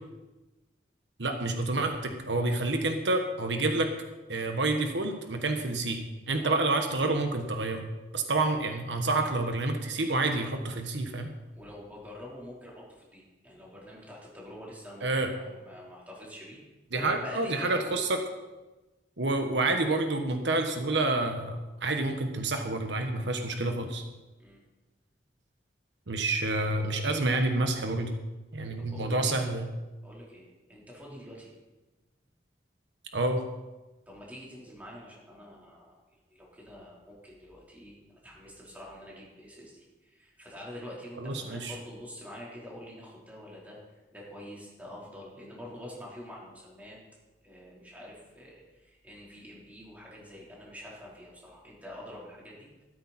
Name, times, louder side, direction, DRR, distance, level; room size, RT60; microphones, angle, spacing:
voice 1, 1.2-3.9 4.3-6.0 6.3-7.8 8.1-11.3 15.0-15.3 16.9-18.2 19.2-24.0 26.1-28.1 28.5-29.7 33.1-33.4 41.2-41.7, right 2 dB, 80° right, 5 dB, 1.3 m, -28 dB
voice 2, 11.5-16.6 16.9-18.1 24.4-24.6 28.8-29.4 30.0-31.5 34.1-36.0 36.3-43.8 44.1-47.0 47.4-52.8, left 1 dB, 10° right, -5 dB, 3.8 m, -46 dB
14.0 x 13.0 x 4.3 m, 1.1 s
head